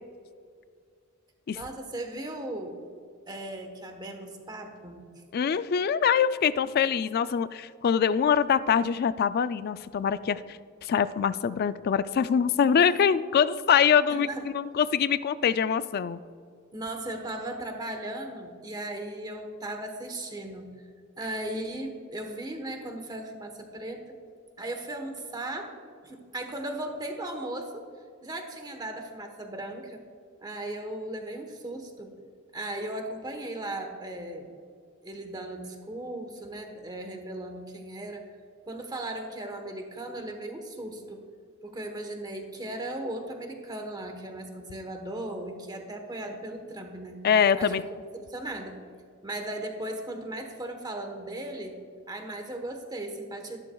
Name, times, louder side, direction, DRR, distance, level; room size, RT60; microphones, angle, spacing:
voice 1, 1.5-2.8 3.3-5.1 12.8-13.0 14.1-14.4 16.7-20.7 21.2-24.0 24.6-25.7 26.0-27.9 28.2-30.0 30.4-32.2 32.5-34.5 35.0-38.2 38.7-41.3 41.6-47.2 47.6-47.8 48.1-48.8 49.2-51.8 52.1-53.6, right 1 dB, 20° right, 4 dB, 1.1 m, -37 dB
voice 2, 5.3-16.2 47.2-47.8, left 7 dB, 50° left, 15 dB, 0.3 m, -24 dB
13.5 x 11.5 x 2.3 m, 2.1 s
head